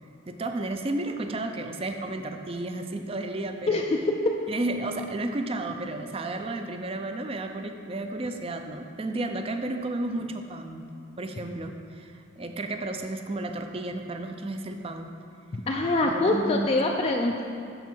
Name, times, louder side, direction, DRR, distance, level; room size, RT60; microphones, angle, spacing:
voice 1, 0.3-3.8 4.5-10.8 11.2-15.1 16.0-16.7, right 2 dB, 30° right, 6 dB, 0.5 m, -32 dB
voice 2, 3.7-4.3 15.5-17.4, left 2 dB, 30° left, 1 dB, 0.4 m, -24 dB
12.0 x 4.6 x 4.4 m, 2.3 s
head